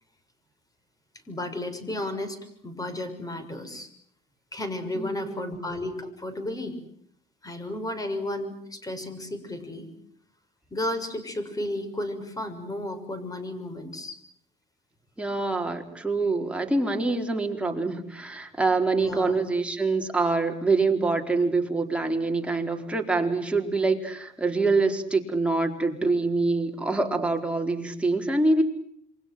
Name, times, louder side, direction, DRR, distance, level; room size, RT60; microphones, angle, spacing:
voice 1, 1.3-3.9 4.5-6.8 7.4-9.9 10.7-14.2 19.0-19.4, left 1 dB, 20° left, 11 dB, 6.4 m, -33 dB
voice 2, 4.9-5.6 15.2-28.6, right 3 dB, 5° right, 2 dB, 4.4 m, -25 dB
28.0 x 24.5 x 7.8 m, 0.67 s
cardioid pair, 110°, 17 cm